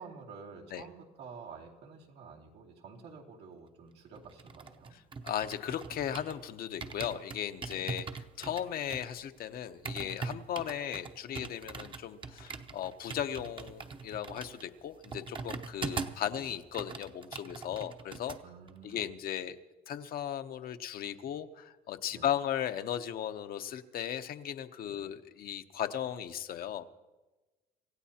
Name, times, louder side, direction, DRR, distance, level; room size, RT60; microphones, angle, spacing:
voice 1, 0.0-4.9 7.8-8.0 16.4-16.5 18.4-19.0 22.1-22.3 24.9-25.1, right 5 dB, 90° right, -2 dB, 2.7 m, -50 dB
sound 1, 4.2-6.4 6.8-16.3 16.6-18.4 18.7-19.0, right 4 dB, 30° right, 0.8 m, -42 dB
voice 2, 5.2-18.4 18.8-19.6 19.9-26.8, left 10 dB, 60° left, 8 dB, 0.9 m, -36 dB
26.5 x 15.5 x 2.9 m, 1.2 s
cardioid pair, 110°, 17 cm